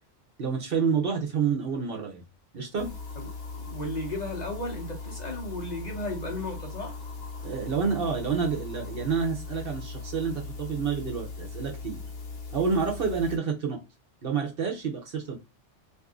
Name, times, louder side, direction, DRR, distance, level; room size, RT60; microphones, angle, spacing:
voice 1, 0.4-2.2 2.5-2.9 7.4-12.0 12.5-13.8 14.2-15.4, right 6 dB, 55° right, 0.9 m, -28 dB
sound 1, 2.8-13.4, left 4 dB, 60° left, 1.2 m, -39 dB
voice 2, 3.5-7.0, left 1 dB, 40° left, 0.9 m, -35 dB
2.7 x 2.6 x 3.6 m
omnidirectional pair, 1.2 m